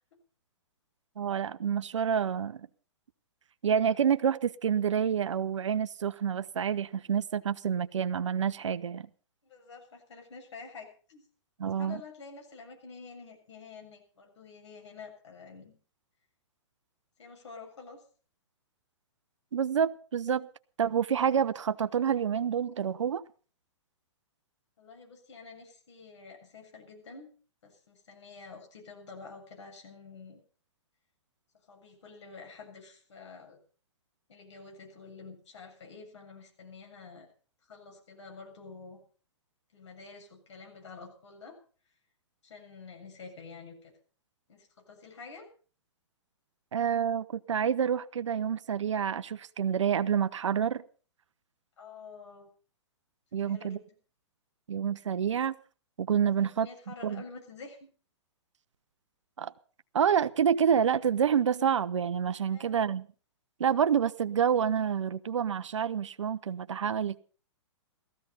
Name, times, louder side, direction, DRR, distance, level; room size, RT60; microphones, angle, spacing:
voice 1, 1.2-2.6 3.6-9.1 11.6-12.0 19.5-20.5 20.8-23.2 46.7-50.8 53.3-53.8 54.7-55.6 56.0-56.7 57.0-57.2 59.4-59.5 59.9-63.0 63.6-67.2, right 8 dB, 80° right, 0.8 m, -28 dB
voice 2, 9.4-11.2 11.6-15.7 17.2-18.0 24.8-27.3 27.6-30.4 31.7-33.6 34.3-37.3 37.7-39.0 39.7-41.5 42.4-43.9 44.5-45.5 51.8-52.5 53.4-53.8 56.4-57.8 62.5-62.8, left 4 dB, 70° left, 7.4 m, -48 dB
16.5 x 14.5 x 5.5 m
hypercardioid pair, 130°, 15 cm